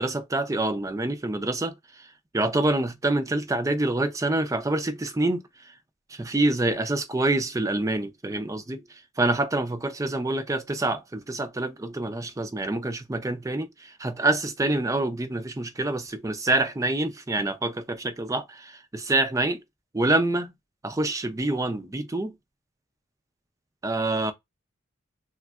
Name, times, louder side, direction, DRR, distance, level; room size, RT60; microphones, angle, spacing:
voice 1, 0.0-2.1 2.3-5.4 6.1-8.8 9.2-19.6 19.9-20.5 20.8-22.3 23.8-24.3, right 2 dB, 15° right, 0.4 m, -26 dB
3.6 x 2.1 x 2.3 m
head